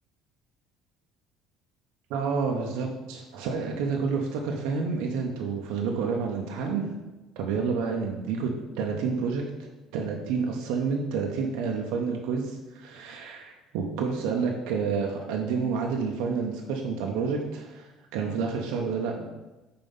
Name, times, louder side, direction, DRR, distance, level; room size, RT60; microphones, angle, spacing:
voice 1, 2.1-6.8 7.4-8.5 8.8-9.4 9.9-19.2, right 5 dB, 85° right, 1 dB, 0.9 m, -29 dB
5.4 x 4.5 x 5.5 m, 1.1 s
cardioid pair, 160°, 0 cm